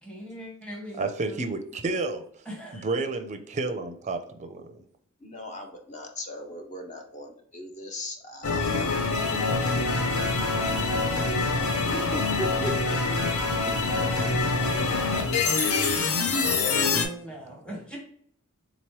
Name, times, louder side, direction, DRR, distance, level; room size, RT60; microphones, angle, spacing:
voice 1, 0.0-1.4 2.5-2.8 16.4-18.0, equal, 5° left, -3 dB, 0.9 m, -41 dB
voice 2, 1.0-2.2 2.7-4.8 17.7-17.8, right 3 dB, 35° right, 7 dB, 0.4 m, -31 dB
voice 3, 5.2-8.9 9.2-9.4 10.4-11.4 11.9-13.2, equal, 35° left, 4 dB, 0.7 m, -38 dB
sound 1, 8.4-17.1, left 3 dB, 75° left, 0.6 m, -25 dB
3.9 x 3.0 x 3.1 m, 0.64 s
head